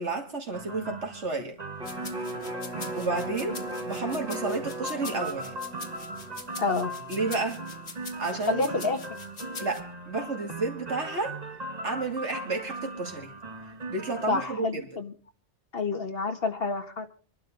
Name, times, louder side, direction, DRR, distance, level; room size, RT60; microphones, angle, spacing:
voice 1, 0.0-1.6 2.9-3.6 3.8-5.5 7.1-7.6 8.0-8.9 9.6-11.4 11.8-13.3 13.9-14.8, right 3 dB, 85° right, 3.0 m, -31 dB
sound 1, 0.5-14.5, right 2 dB, 35° right, 1.4 m, -39 dB
sound 2, 1.8-9.8, left 4 dB, 90° left, 1.9 m, -44 dB
Electric guitar, 1.8-8.0 8.4-8.5, right 1 dB, 5° right, 4.9 m, -39 dB
voice 2, 6.6-6.9 8.5-9.0 14.3-15.1 15.7-17.1, left 4 dB, 55° left, 1.8 m, -28 dB
26.0 x 12.0 x 3.9 m
omnidirectional pair, 1.2 m